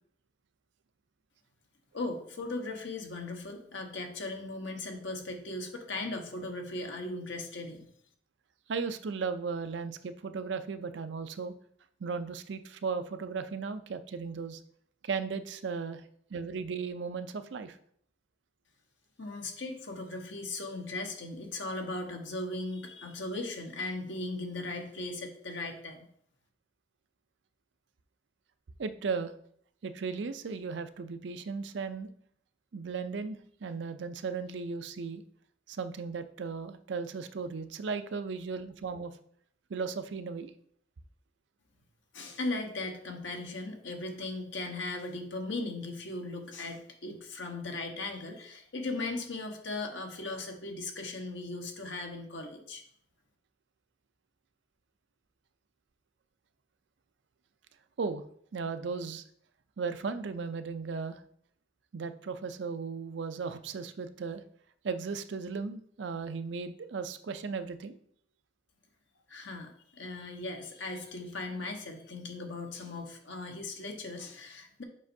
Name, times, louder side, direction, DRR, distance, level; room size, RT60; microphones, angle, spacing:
voice 1, 1.9-7.9 19.2-26.1 42.1-52.8 69.3-74.8, left 2 dB, 85° left, 3 dB, 1.1 m, -38 dB
voice 2, 8.7-11.5 12.0-14.6 15.0-16.0 16.3-17.8 28.8-29.3 29.8-32.1 32.7-35.2 35.7-39.1 39.7-40.5 58.0-58.2 58.5-59.2 59.8-61.2 61.9-64.4 64.8-68.0, right 5 dB, 75° right, 10 dB, 0.5 m, -36 dB
7.3 x 5.2 x 2.7 m, 0.65 s
head